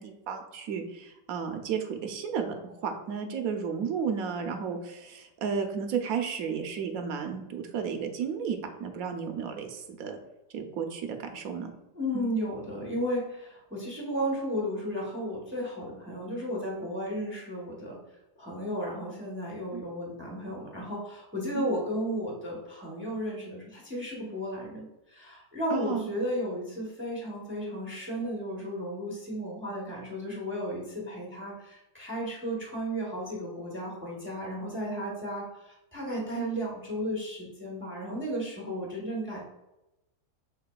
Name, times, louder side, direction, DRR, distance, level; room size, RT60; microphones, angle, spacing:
voice 1, 0.0-10.2 10.5-11.7 12.1-12.3 19.7-19.8 21.5-21.7 25.7-26.1 36.3-36.5, right 6 dB, 70° right, 5 dB, 1.0 m, -33 dB
voice 2, 11.9-18.0 18.4-24.9 25.1-39.4, equal, 10° right, -2 dB, 0.7 m, -34 dB
6.5 x 3.5 x 2.3 m, 0.95 s
omnidirectional pair, 1.7 m